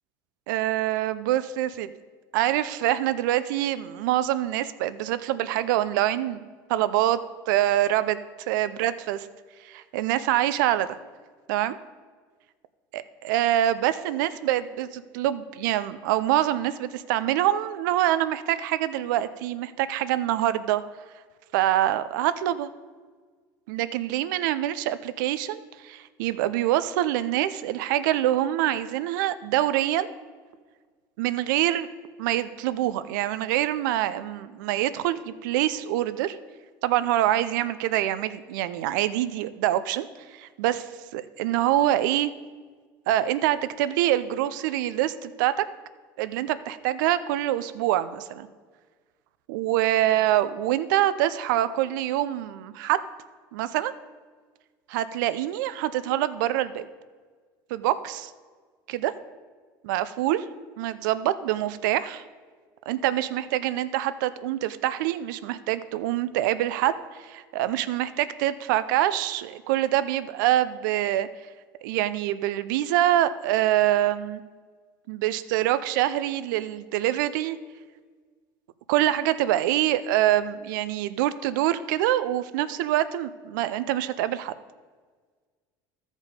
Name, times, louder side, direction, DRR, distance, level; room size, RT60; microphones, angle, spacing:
voice 1, 0.5-1.9 2.3-7.2 7.5-8.2 8.5-9.3 9.6-11.0 11.5-11.8 12.9-20.8 21.5-22.7 23.7-30.1 31.2-31.9 32.2-36.4 36.8-40.1 40.3-40.9 41.1-42.3 43.1-45.6 46.2-48.5 49.5-53.0 53.5-53.9 54.9-56.9 57.7-58.3 58.9-59.1 59.8-60.4 60.8-62.2 62.9-71.3 71.8-74.4 75.1-77.6 78.9-84.5, right 13 dB, 80° right, 14 dB, 0.5 m, -25 dB
14.0 x 5.2 x 5.1 m, 1.5 s
hypercardioid pair, 85°, 10 cm